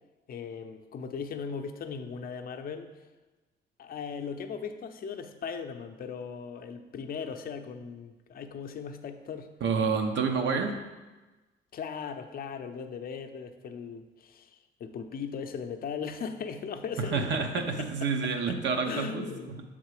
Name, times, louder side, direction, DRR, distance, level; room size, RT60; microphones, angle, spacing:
voice 1, 0.3-2.9 3.8-9.5 11.7-18.6 18.8-19.6, left 6 dB, 50° left, 6 dB, 0.5 m, -38 dB
voice 2, 9.6-10.8 17.0-19.3, right 5 dB, 65° right, 4 dB, 0.8 m, -28 dB
6.6 x 3.7 x 4.8 m, 1.2 s
cardioid pair, 90°, 20 cm